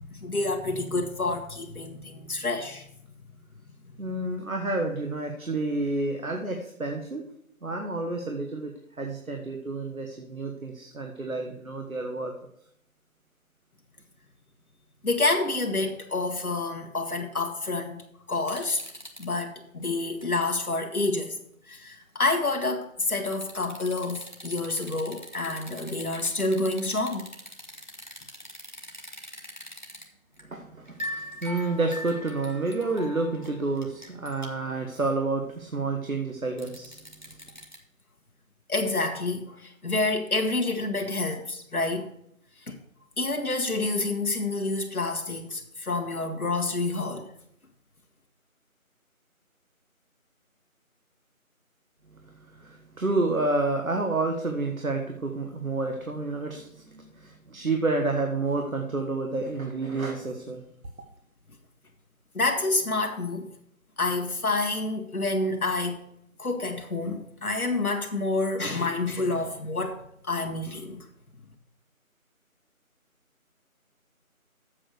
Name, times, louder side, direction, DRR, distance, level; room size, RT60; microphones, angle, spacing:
voice 1, 0.0-2.9 15.0-18.0 18.3-18.8 19.2-21.4 21.6-27.3 38.7-42.1 42.6-42.7 43.2-47.3 62.3-63.5 64.0-66.0 66.4-71.1, left 2 dB, 80° left, 3 dB, 1.7 m, -28 dB
voice 2, 4.0-7.2 7.6-12.3 30.5-37.0 37.2-37.4 52.5-60.6, right 3 dB, 70° right, 3 dB, 1.4 m, -29 dB
sound 1, 18.3-19.3 19.8-20.2 20.7-20.8 23.3-30.0 30.3-30.5 30.8-34.6 36.6-37.8, left 1 dB, 30° left, 1.0 m, -42 dB
7.6 x 6.8 x 6.5 m, 0.72 s
figure-of-eight pair, 180°, 43 cm